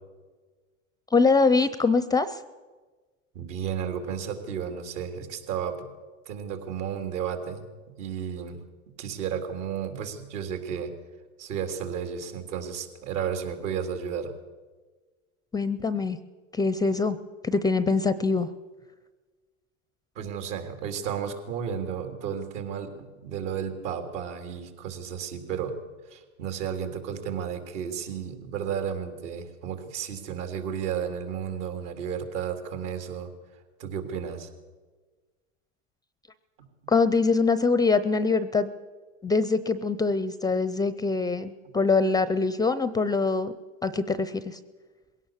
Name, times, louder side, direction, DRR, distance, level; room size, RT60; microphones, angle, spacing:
voice 1, 1.1-2.4 15.5-16.2 16.5-17.2 17.4-18.5 36.9-38.7 39.2-43.5 43.8-44.6, left 4 dB, 10° left, 15 dB, 0.5 m, -23 dB
voice 2, 3.3-5.9 6.2-7.7 8.0-8.6 9.0-10.9 11.4-14.3 20.1-25.8 26.0-33.3 33.8-34.5, right 8 dB, 65° right, 6 dB, 3.4 m, -33 dB
21.0 x 17.0 x 7.4 m, 1.3 s
hypercardioid pair, 120°, 39 cm